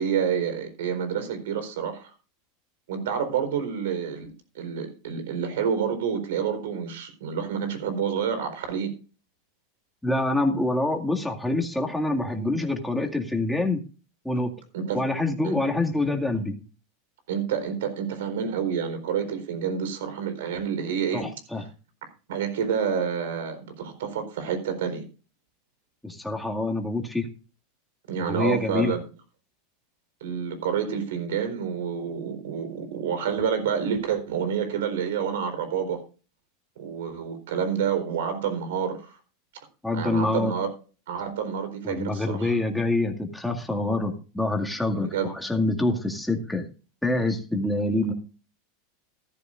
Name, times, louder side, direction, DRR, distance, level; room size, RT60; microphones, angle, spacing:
voice 1, 0.0-2.1 2.9-4.3 4.5-8.9 14.7-15.0 15.4-15.6 17.3-21.3 21.6-21.7 22.3-25.0 28.1-29.0 30.2-36.0 36.8-39.2 39.9-40.7 41.1-42.6 44.9-45.6, right 7 dB, 80° right, 8 dB, 4.3 m, -28 dB
voice 2, 10.0-13.8 14.2-14.5 14.9-16.6 21.1-21.6 26.0-27.3 28.2-28.9 39.8-40.5 41.8-46.6 47.0-48.1, left 2 dB, 5° left, 2 dB, 2.2 m, -26 dB
14.0 x 13.5 x 2.6 m, 0.35 s
supercardioid pair, 125°, 0 cm